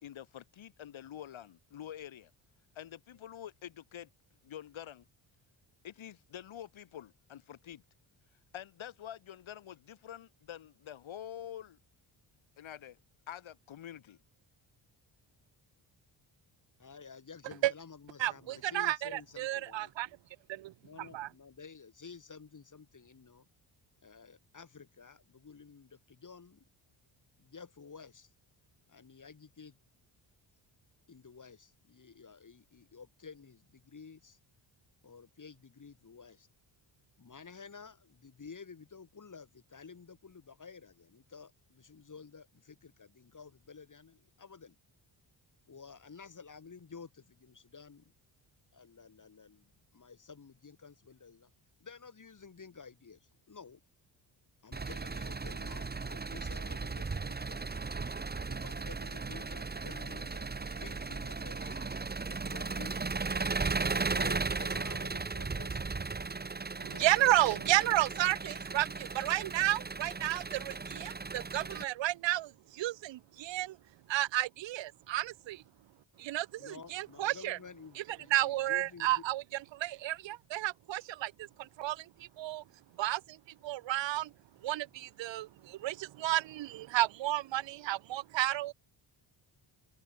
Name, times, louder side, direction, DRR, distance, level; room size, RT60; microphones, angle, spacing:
voice 1, 0.0-2.3 2.8-4.1 4.4-5.1 5.8-7.8 8.5-11.8 12.6-13.0 13.3-14.2, left 10 dB, 75° left, 3.5 m, -47 dB
voice 2, 16.8-19.9 20.8-23.5 24.0-26.6 27.4-28.3 28.9-29.8 31.1-34.4 35.0-36.5 37.2-44.8 45.7-48.0 48.7-51.5 51.8-53.8 54.6-57.6 58.4-61.9 62.2-65.8 66.8-67.7 68.0-68.2 76.6-79.2, left 5 dB, 40° left, 7.3 m, -52 dB
voice 3, 18.2-19.0 19.4-20.1 21.1-21.3 67.0-72.5 72.8-73.7 74.1-75.6 76.2-76.5 76.9-77.6 78.3-79.4 79.8-81.3 81.8-82.0 82.4-82.6 83.0-83.2 83.6-84.3 84.6-85.5 85.8-88.7, right 15 dB, 65° right, 0.7 m, -31 dB
Engine, 54.7-71.8, right 4 dB, 20° right, 1.2 m, -36 dB
cardioid pair, 95°, 47 cm